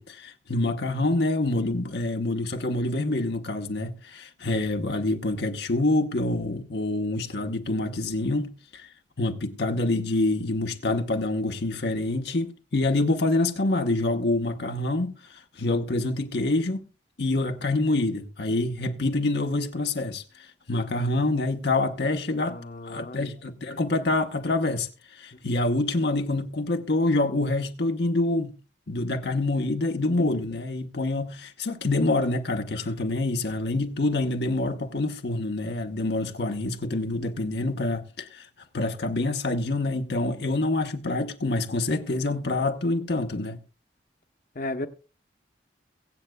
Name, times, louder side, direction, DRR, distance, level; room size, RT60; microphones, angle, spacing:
voice 1, 0.0-8.9 9.2-16.9 17.2-20.2 20.7-22.6 22.8-28.6 28.9-38.5 38.7-43.6, left 2 dB, 70° left, 1.1 m, -26 dB
voice 2, 22.5-23.3 25.3-25.4 44.5-44.9, left 2 dB, 50° left, 1.0 m, -35 dB
23.0 x 8.0 x 2.3 m
head